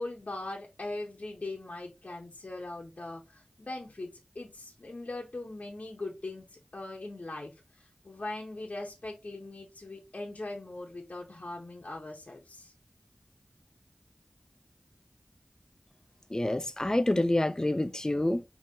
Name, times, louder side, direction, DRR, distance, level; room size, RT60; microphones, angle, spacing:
voice 1, 0.0-12.7, left 2 dB, 65° left, 0.8 m, -40 dB
voice 2, 16.3-18.4, left 1 dB, 25° left, 0.5 m, -27 dB
5.1 x 2.8 x 2.7 m
wide cardioid pair, 50°, 3 cm